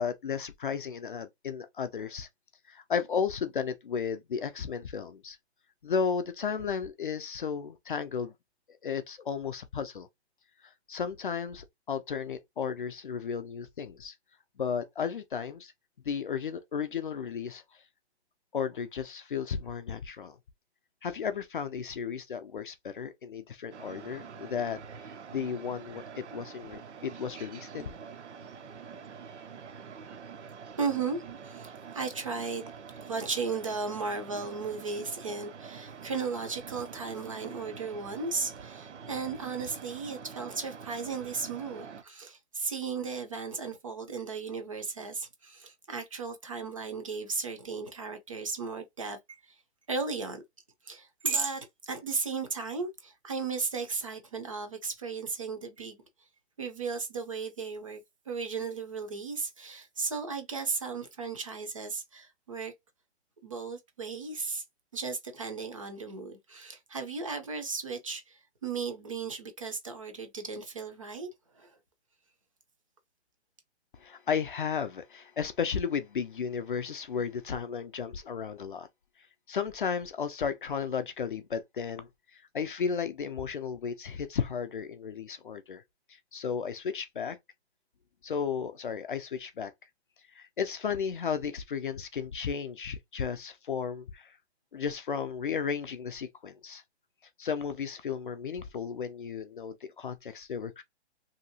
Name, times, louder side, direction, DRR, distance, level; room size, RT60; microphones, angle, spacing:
voice 1, 0.0-2.3 2.7-5.4 5.8-8.3 8.7-10.1 10.6-14.1 14.6-15.7 16.0-17.8 18.5-20.4 21.0-24.8 25.3-27.9 73.9-78.9 79.5-85.8 86.3-87.4 88.2-89.7 90.3-94.4 94.7-96.8 97.4-100.8, left 6 dB, 50° left, 0.5 m, -34 dB
sound 1, 23.7-42.0, right 6 dB, 75° right, 0.7 m, -46 dB
voice 2, 30.8-32.7 33.0-49.6 49.9-50.4 50.8-56.0 56.6-62.7 63.4-64.6 64.9-71.3 71.5-71.8, right 4 dB, 30° right, 0.6 m, -35 dB
2.8 x 2.8 x 2.7 m
hypercardioid pair, 165°, 34 cm